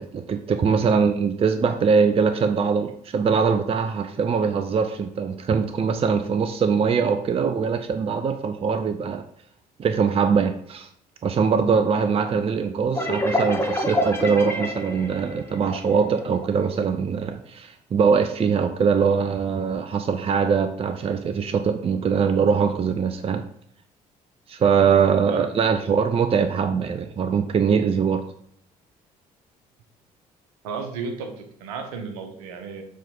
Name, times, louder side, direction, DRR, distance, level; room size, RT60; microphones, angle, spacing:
voice 1, 0.0-9.2 9.8-10.9 11.2-23.4 24.5-28.3, right 6 dB, 30° right, 8 dB, 0.6 m, -22 dB
sound 1, 12.9-16.5, equal, 10° left, 1.3 m, -27 dB
voice 2, 25.3-25.6 30.6-32.8, right 5 dB, 65° right, 4 dB, 1.3 m, -34 dB
7.4 x 3.7 x 5.4 m, 0.65 s
figure-of-eight pair, 50°, 20 cm